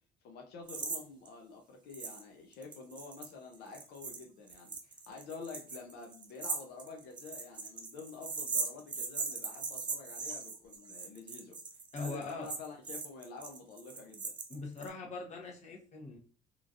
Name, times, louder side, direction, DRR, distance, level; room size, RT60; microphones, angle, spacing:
voice 1, 0.2-11.6 12.0-14.3, left 4 dB, 75° left, 1 dB, 0.6 m, -48 dB
sound 1, 0.7-1.0 1.3-1.4 1.9-2.2 2.5-14.9, right 4 dB, 25° right, 0.5 m, -39 dB
voice 2, 11.9-12.5 14.5-16.2, left 3 dB, 45° left, 0 dB, 1.0 m, -41 dB
2.9 x 2.5 x 2.5 m, 0.39 s
cardioid pair, 110°, 17 cm